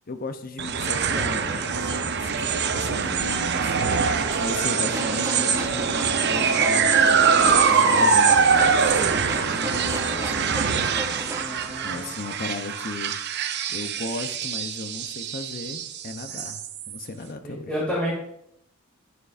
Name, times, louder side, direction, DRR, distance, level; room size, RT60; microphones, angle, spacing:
voice 1, 0.1-10.9 11.8-13.4 13.7-16.6 16.9-17.7, left 3 dB, 40° left, 8 dB, 0.7 m, -36 dB
sound 1, 0.6-17.0, right 5 dB, 50° right, 0.7 m, -23 dB
sound 2, 0.8-10.3, right 2 dB, 80° right, 3.2 m, -39 dB
sound 3, 4.8-11.4, right 1 dB, 15° right, 0.6 m, -35 dB
voice 2, 11.3-12.1 17.4-18.1, equal, 5° left, -7 dB, 2.5 m, -30 dB
11.0 x 9.3 x 2.6 m, 0.75 s
head